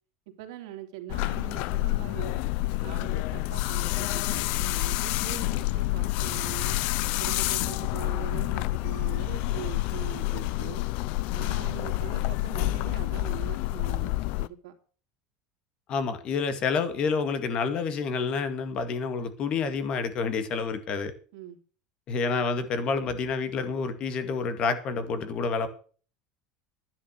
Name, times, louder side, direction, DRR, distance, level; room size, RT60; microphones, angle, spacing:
voice 1, 0.4-2.4 2.8-6.8 7.2-10.8 11.3-14.7 21.3-21.6, right 12 dB, 85° right, 2.8 m, -42 dB
sound 1, 1.1-14.5, left 19 dB, 60° left, 0.6 m, -28 dB
voice 2, 15.9-21.1 22.1-25.7, left 5 dB, 40° left, 2.1 m, -28 dB
11.5 x 10.0 x 6.6 m
supercardioid pair, 145°, 3 cm